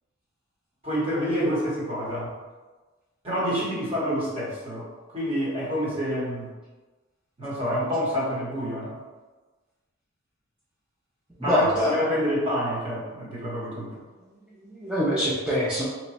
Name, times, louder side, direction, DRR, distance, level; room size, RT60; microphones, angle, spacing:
voice 1, 0.8-2.3 3.2-6.5 7.4-9.0 11.4-14.0, equal, 25° right, -7 dB, 1.0 m, -28 dB
voice 2, 11.4-11.9 14.6-15.8, left 1 dB, 5° right, -10 dB, 0.5 m, -24 dB
2.9 x 2.2 x 4.0 m, 1.3 s
head